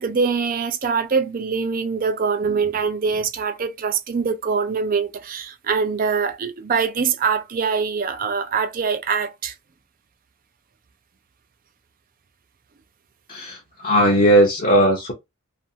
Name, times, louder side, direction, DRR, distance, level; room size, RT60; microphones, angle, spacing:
voice 1, 0.0-9.5, right 5 dB, 40° right, 0.4 m, -23 dB
voice 2, 13.3-15.1, equal, 35° left, 0.7 m, -17 dB
2.5 x 2.5 x 2.7 m
head